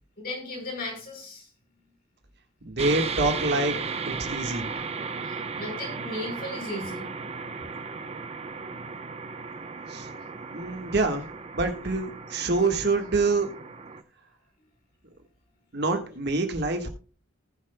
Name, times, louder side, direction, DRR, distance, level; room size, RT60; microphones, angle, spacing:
voice 1, 0.2-1.5 5.2-7.1 12.6-12.7, left 2 dB, 50° left, 1 dB, 4.8 m, -36 dB
voice 2, 2.6-3.8 4.0-4.7 9.9-10.1 10.5-11.3 11.5-13.6 15.7-16.9, right 3 dB, 55° right, 5 dB, 1.5 m, -26 dB
sound 1, 2.8-14.0, right 4 dB, 30° right, 0.8 m, -35 dB
19.0 x 7.3 x 2.2 m, 0.37 s
head